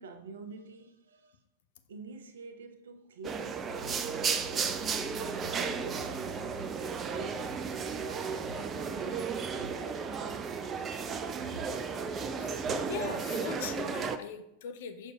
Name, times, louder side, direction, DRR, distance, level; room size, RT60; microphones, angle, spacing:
voice 1, 0.0-1.4 1.9-6.4 6.7-10.9 11.5-11.7, right 4 dB, 65° right, 0.8 m, -48 dB
sound 1, 3.2-14.2, right 5 dB, 25° right, 0.5 m, -34 dB
sound 2, 3.7-13.2, left 1 dB, 85° right, 1.3 m, -51 dB
voice 2, 12.4-15.1, left 8 dB, 55° left, 0.5 m, -41 dB
6.4 x 6.4 x 2.3 m
figure-of-eight pair, 90°, 0 cm